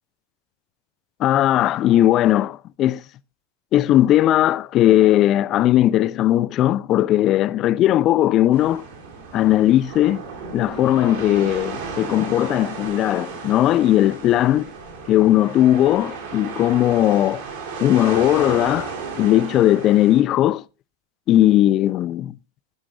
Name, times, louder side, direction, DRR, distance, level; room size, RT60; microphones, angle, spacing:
voice 1, 1.2-3.0 3.7-8.9 9.3-10.2 10.5-14.7 15.1-17.4 17.8-20.6 21.3-22.3, left 13 dB, 35° left, 0.5 m, -18 dB
sound 1, 8.5-20.2, right 5 dB, 55° right, 3.5 m, -34 dB
17.0 x 6.1 x 3.7 m
figure-of-eight pair, 90°, 0 cm